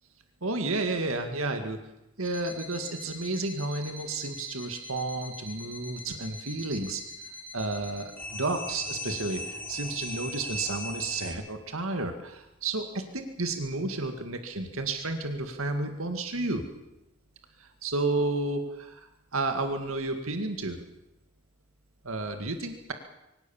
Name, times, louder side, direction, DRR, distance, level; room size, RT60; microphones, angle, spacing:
voice 1, 0.4-1.8 2.2-7.0 7.5-16.6 17.6-20.8 22.0-22.9, right 2 dB, 75° right, 6 dB, 2.1 m, -31 dB
sound 1, 2.2-11.3, left 1 dB, 5° left, 3.7 m, -40 dB
24.5 x 17.5 x 7.2 m, 0.89 s
head